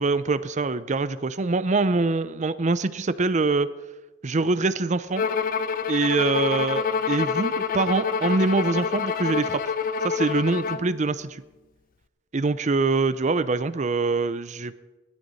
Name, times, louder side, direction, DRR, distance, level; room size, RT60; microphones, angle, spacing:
voice 1, 0.0-3.7 4.2-5.3 5.9-9.6 10.0-11.4 12.3-14.7, right 3 dB, 35° right, 14 dB, 0.5 m, -24 dB
Bowed string instrument, 5.2-10.9, left 6 dB, 45° left, 0.5 m, -27 dB
19.5 x 13.0 x 4.1 m, 1.1 s
head